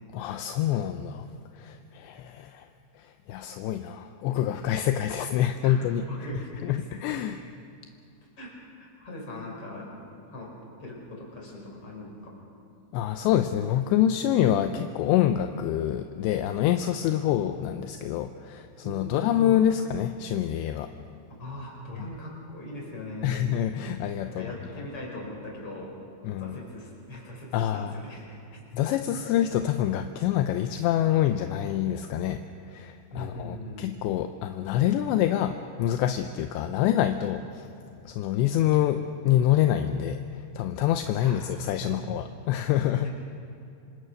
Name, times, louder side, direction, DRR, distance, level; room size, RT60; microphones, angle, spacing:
voice 1, 0.1-1.3 1.6-2.7 3.3-6.0 6.6-7.5 12.9-20.9 23.2-24.5 26.2-26.6 27.5-27.9 28.7-32.4 32.7-37.7 38.1-40.2 40.6-43.1, left 11 dB, 80° left, 7 dB, 2.9 m, -26 dB
voice 2, 6.1-6.9 8.4-8.5 8.8-9.9 10.3-10.5 10.8-12.1 18.8-19.4 21.4-23.4 24.2-25.9 26.4-28.4 28.8-28.9 33.1-33.8 41.2-41.4 41.8-42.0 43.0-43.1, left 1 dB, 30° left, -2 dB, 6.2 m, -40 dB
26.5 x 25.5 x 6.5 m, 2.7 s
omnidirectional pair, 5.3 m